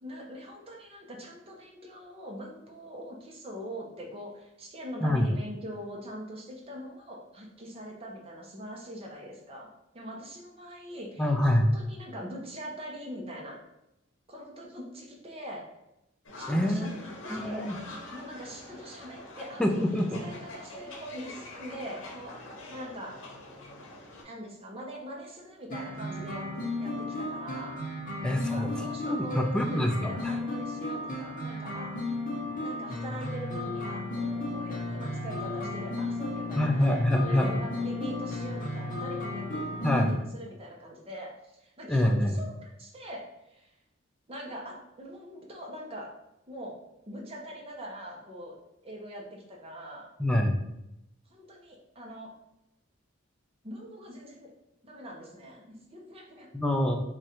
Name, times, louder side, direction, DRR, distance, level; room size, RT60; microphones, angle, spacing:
voice 1, 0.0-9.7 9.9-13.6 14.3-15.6 16.4-17.7 18.1-19.8 20.2-22.4 22.7-23.2 24.2-27.8 28.5-32.0 32.6-43.7 44.3-46.1 46.5-46.8 47.1-48.6 48.8-50.1 51.3-52.3 53.6-54.5 54.8-56.5, equal, 30° right, -1 dB, 0.7 m, -42 dB
voice 2, 11.2-11.7 16.5-16.9 17.3-17.8 19.6-20.2 28.2-30.4 36.5-37.6 39.8-40.1 41.9-42.4 50.2-50.6 56.5-57.0, left 1 dB, 5° left, 2 dB, 0.4 m, -26 dB
sound 1, 16.2-24.2, left 1 dB, 90° left, 0.8 m, -45 dB
sound 2, 25.7-40.1, left 2 dB, 45° left, 0.9 m, -34 dB
3.2 x 2.5 x 4.2 m, 0.87 s
head